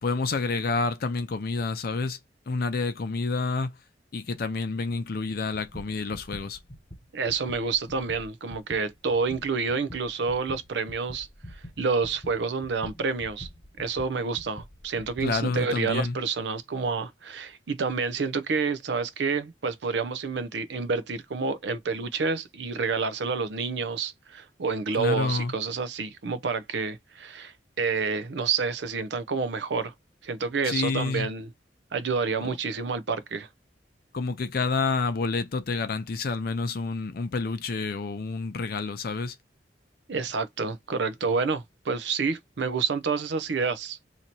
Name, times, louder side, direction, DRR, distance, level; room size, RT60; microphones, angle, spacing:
voice 1, 0.0-2.2 2.5-3.7 4.1-6.6 15.2-16.2 25.0-25.5 30.6-31.3 32.4-32.5 34.1-39.4, left 4 dB, 55° left, 0.5 m, -29 dB
sound 1, 5.7-15.4, equal, 20° left, 1.3 m, -45 dB
voice 2, 7.1-11.3 11.8-13.5 13.8-29.9 30.2-31.5 31.9-33.5 40.1-44.0, right 4 dB, 75° right, 0.5 m, -29 dB
2.8 x 2.7 x 4.4 m
head